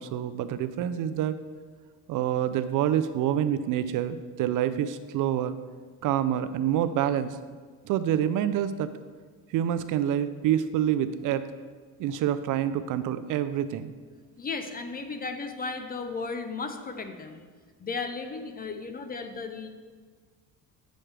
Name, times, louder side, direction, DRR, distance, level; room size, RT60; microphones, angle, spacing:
voice 1, 0.0-1.4 2.1-5.6 6.0-7.4 7.8-8.9 9.5-11.4 12.0-13.9, right 10 dB, 60° right, 12 dB, 0.4 m, -27 dB
voice 2, 14.4-17.4 17.8-19.7, left 4 dB, 25° left, 7 dB, 0.6 m, -35 dB
8.6 x 6.3 x 3.3 m, 1.5 s
cardioid pair, 110°, 36 cm